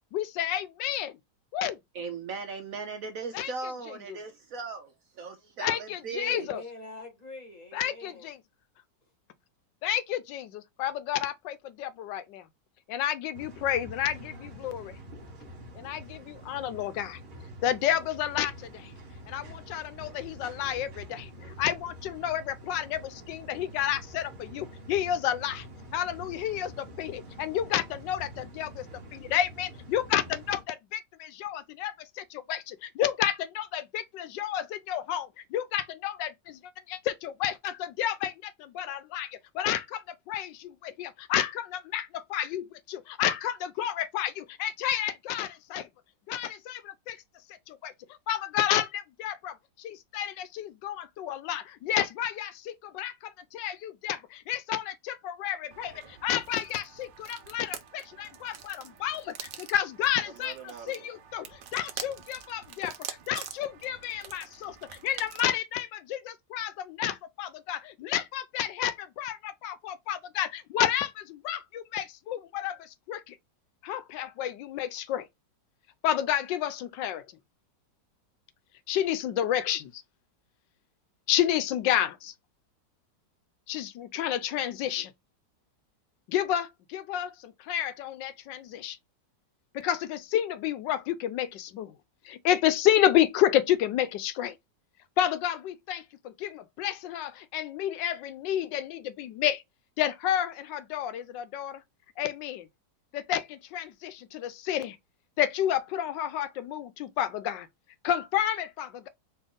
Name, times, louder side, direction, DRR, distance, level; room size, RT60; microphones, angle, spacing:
voice 1, 0.1-1.2 1.5-1.8 3.3-3.5 3.9-4.2 5.6-6.6 7.7-8.4 9.8-10.5 10.8-12.5 12.9-15.0 15.7-17.2 17.6-18.9 19.3-25.7 25.9-28.9 29.1-36.6 36.9-45.9 46.3-47.2 47.7-47.9 48.3-73.4 73.8-75.3 76.0-77.3 78.9-80.0 81.3-82.3 83.7-85.1 86.3-89.0 89.7-92.0 92.2-94.6 95.2-99.6 100.0-101.8 102.2-102.7 103.1-105.0 105.4-107.7 108.0-109.1, left 11 dB, 85° left, 1.3 m, -30 dB
voice 2, 1.9-4.9 5.2-6.5, right 4 dB, 65° right, 0.9 m, -37 dB
voice 3, 6.2-8.3, left 2 dB, 25° left, 1.6 m, -45 dB
sound 1, 13.3-30.6, equal, 35° right, 0.9 m, -46 dB
sound 2, 55.7-65.6, right 9 dB, 90° right, 1.5 m, -45 dB
4.4 x 3.0 x 3.6 m
omnidirectional pair, 1.9 m